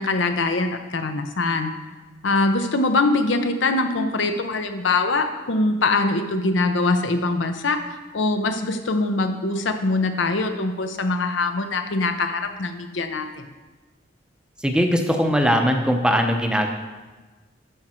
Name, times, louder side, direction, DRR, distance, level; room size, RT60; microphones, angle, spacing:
voice 1, 0.0-1.7 2.2-7.8 8.1-13.5, left 3 dB, 80° left, 7 dB, 0.7 m, -23 dB
voice 2, 14.6-16.7, equal, 5° right, 4 dB, 0.6 m, -20 dB
12.0 x 5.1 x 4.4 m, 1.3 s
head